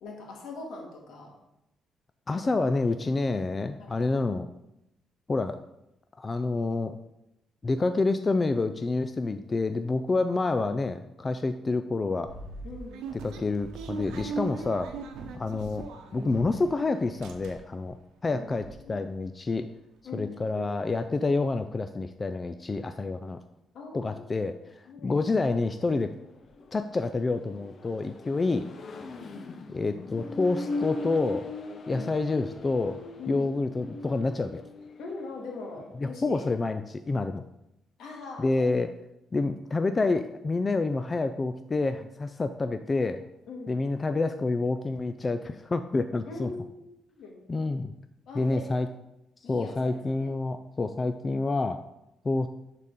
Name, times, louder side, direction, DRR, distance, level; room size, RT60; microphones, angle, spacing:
voice 1, 0.0-1.3 3.8-4.0 12.6-13.0 18.3-18.4 18.8-19.0 20.0-20.8 23.7-24.2 24.4-24.5 24.8-25.2 29.3-29.6 31.9-32.1 33.2-33.5 35.0-36.4 38.0-38.6 43.5-43.7 46.3-47.5 48.3-48.7 49.4-50.3, left 3 dB, 75° left, 0 dB, 1.9 m, -41 dB
voice 2, 2.3-4.5 5.3-5.6 6.2-7.0 7.6-12.3 13.2-14.9 15.3-15.9 16.1-18.0 18.2-19.7 20.1-23.4 23.9-26.1 26.7-28.7 29.7-31.5 31.9-33.0 33.3-34.6 36.0-37.4 38.4-38.9 39.3-43.2 43.7-46.5 47.5-47.9 48.3-48.9 49.5-51.8 52.2-52.5, left 3 dB, 30° left, 9 dB, 0.4 m, -28 dB
sound 1, 12.3-16.7 17.0-17.9 18.3-18.4 18.5-18.8, right 4 dB, 90° right, 0.8 m, -39 dB
Accelerating revving vroom, 25.6-35.9, left 2 dB, 50° left, 0.7 m, -40 dB
11.0 x 4.1 x 3.7 m, 0.86 s
cardioid pair, 90°, 0 cm